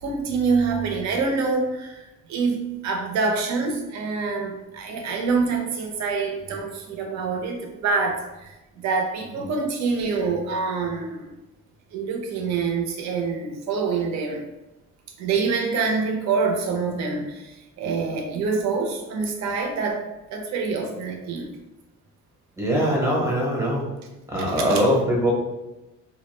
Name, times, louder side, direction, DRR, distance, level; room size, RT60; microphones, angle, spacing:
voice 1, 0.0-11.3 11.9-14.4 15.2-20.0 20.3-21.5 24.7-24.8, right 4 dB, 60° right, 2 dB, 0.6 m, -26 dB
voice 2, 22.6-23.9 24.3-25.3, equal, 10° right, -3 dB, 0.7 m, -22 dB
2.3 x 2.0 x 3.2 m, 1.0 s
cardioid pair, 120°, 32 cm